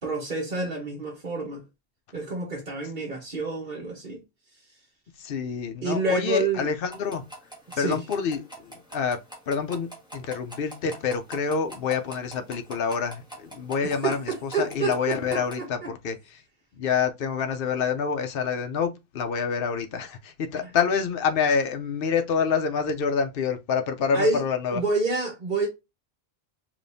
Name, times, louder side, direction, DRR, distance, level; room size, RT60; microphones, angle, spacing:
voice 1, 0.0-1.6 2.1-4.2 5.8-6.7 7.7-8.0 13.8-15.9 20.6-20.7 24.1-24.4 24.7-25.7, right 3 dB, 50° right, 1.3 m, -28 dB
voice 2, 5.2-7.2 7.8-9.2 9.5-16.4 16.7-24.8, left 6 dB, 65° left, 0.9 m, -27 dB
sound 1, 6.9-15.6, right 1 dB, 5° right, 1.6 m, -44 dB
5.1 x 3.1 x 2.6 m
omnidirectional pair, 1.0 m